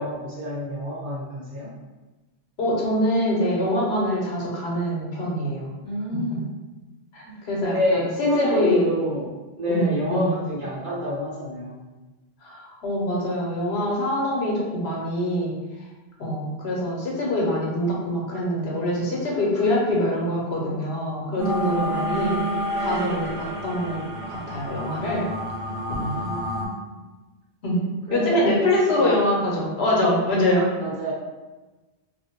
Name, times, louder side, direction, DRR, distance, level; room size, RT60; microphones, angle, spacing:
voice 1, 0.0-1.7 5.8-6.4 7.6-11.8 21.6-22.4 26.1-27.0 28.1-29.2 30.8-31.1, equal, 50° right, -8 dB, 1.0 m, -28 dB
voice 2, 2.6-5.7 6.1-6.4 7.1-8.9 9.7-10.3 12.4-15.6 16.2-22.4 22.8-24.0 24.3-25.3 26.0-26.1 27.6-27.8 28.1-30.7, left 1 dB, 75° left, -3 dB, 1.0 m, -24 dB
sound 1, 21.4-26.7, right 1 dB, 90° right, 0.9 m, -29 dB
2.5 x 2.1 x 2.8 m, 1.2 s
omnidirectional pair, 1.1 m